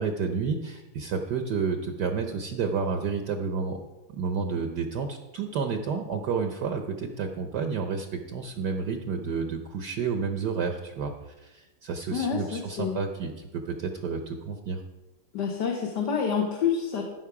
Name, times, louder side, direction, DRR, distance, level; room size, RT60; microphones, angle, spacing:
voice 1, 0.0-3.8 4.2-14.8, right 5 dB, 65° right, 5 dB, 1.2 m, -30 dB
voice 2, 12.1-13.0 15.3-17.1, left 7 dB, 60° left, 0 dB, 1.7 m, -28 dB
15.0 x 6.2 x 4.8 m, 1.1 s
omnidirectional pair, 2.2 m